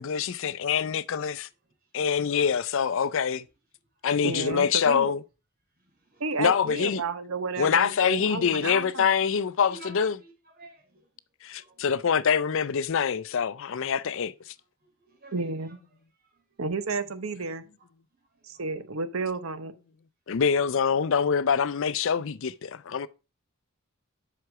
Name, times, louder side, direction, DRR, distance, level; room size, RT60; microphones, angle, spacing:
voice 1, 0.0-1.5 1.9-3.4 4.0-5.2 6.4-7.0 7.6-10.1 11.4-14.3 20.3-23.1, left 7 dB, 60° left, 0.5 m, -25 dB
voice 2, 0.6-1.0 1.8-2.0 2.3-2.6 3.9-4.0 5.8-6.5 9.6-11.1 11.5-12.2 14.8-15.8 16.1-16.6 17.8-17.9 18.2-18.7 23.0-23.1, right 2 dB, 45° right, 3.7 m, -53 dB
voice 3, 4.2-5.1 6.2-9.1 15.3-15.8 16.6-17.6 18.4-19.7, right 4 dB, 65° right, 0.9 m, -32 dB
7.8 x 5.9 x 4.7 m
head